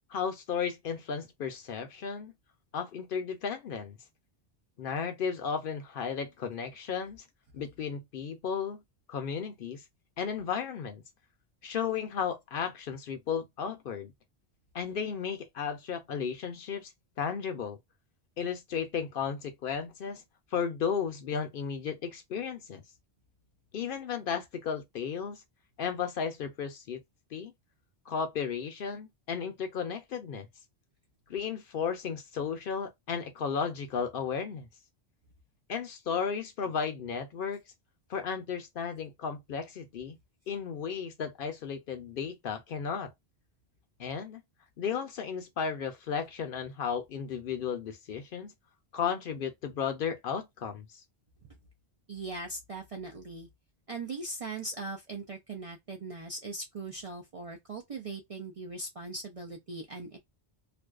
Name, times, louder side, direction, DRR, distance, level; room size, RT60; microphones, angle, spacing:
voice 1, 0.1-2.3 2.7-4.0 4.8-7.2 7.5-8.8 9.1-9.8 10.2-11.0 11.6-14.1 14.7-16.9 17.2-17.8 18.4-20.2 20.5-22.8 23.7-25.4 25.8-27.0 27.3-27.5 28.1-30.5 31.3-34.7 35.7-37.6 38.1-40.2 40.5-43.1 44.0-44.4 44.8-48.5 48.9-51.0, left 6 dB, 65° left, 0.7 m, -34 dB
voice 2, 52.1-53.5 53.9-60.2, right 3 dB, 50° right, 0.4 m, -40 dB
2.5 x 2.2 x 2.3 m
omnidirectional pair, 1.1 m